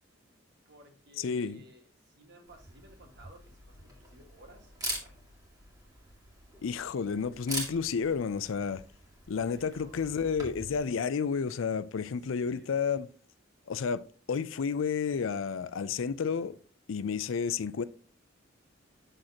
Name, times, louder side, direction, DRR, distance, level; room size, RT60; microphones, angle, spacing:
voice 1, 0.6-5.2 9.4-10.0 12.0-12.8, right 1 dB, 55° right, 1.7 m, -57 dB
voice 2, 1.2-1.6 6.6-8.8 9.3-13.1 13.7-16.6 16.9-17.8, left 6 dB, 75° left, 0.4 m, -31 dB
Camera, 2.5-10.8, right 1 dB, 20° right, 2.0 m, -43 dB
7.7 x 6.4 x 2.9 m
head